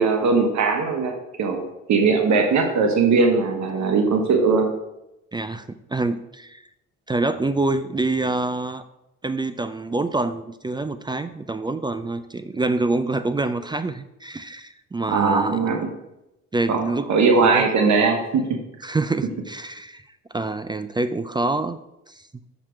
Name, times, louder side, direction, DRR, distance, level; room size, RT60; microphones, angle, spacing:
voice 1, 0.0-1.6 1.9-4.7 15.1-15.8 16.7-18.4, right 4 dB, 65° right, 4 dB, 1.3 m, -20 dB
voice 2, 5.3-6.6 7.1-8.8 9.2-15.8 16.5-17.1 17.4-17.7 18.8-20.0 20.3-21.8 22.1-22.4, right 2 dB, 15° right, 12 dB, 0.4 m, -26 dB
6.2 x 5.9 x 4.5 m, 0.88 s
cardioid pair, 90°, 30 cm